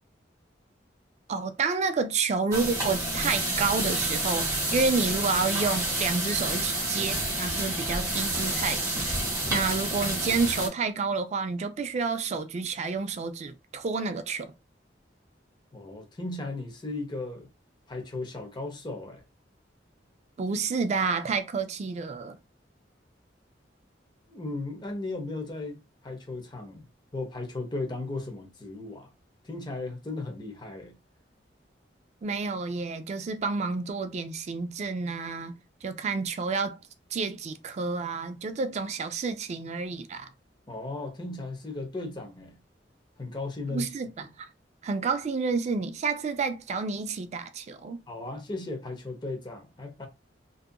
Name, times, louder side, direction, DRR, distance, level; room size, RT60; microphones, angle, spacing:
voice 1, 1.3-9.1 9.5-14.5 20.4-22.4 32.2-36.8 37.1-40.3 43.7-44.5 44.8-48.0, right 4 dB, 40° right, 0.3 m, -29 dB
sound 1, 2.5-10.7, right 1 dB, 20° right, 1.1 m, -29 dB
voice 2, 15.7-17.5 17.9-19.2 24.3-26.8 27.1-29.1 29.4-30.9 40.7-42.6 43.2-43.9 48.1-50.1, left 2 dB, 25° left, 0.6 m, -36 dB
2.7 x 2.4 x 2.2 m
head